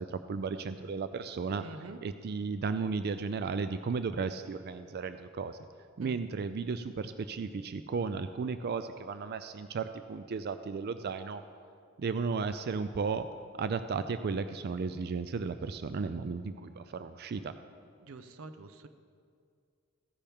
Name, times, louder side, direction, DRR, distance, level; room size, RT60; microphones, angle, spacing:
voice 1, 0.0-1.6 2.0-5.6 6.0-11.4 12.0-13.3 13.6-17.5, right 5 dB, 50° right, 11 dB, 0.4 m, -34 dB
voice 2, 1.6-2.0 6.0-6.2 18.0-18.9, right 3 dB, 90° right, 10 dB, 0.6 m, -46 dB
15.0 x 10.0 x 3.6 m, 2.2 s
head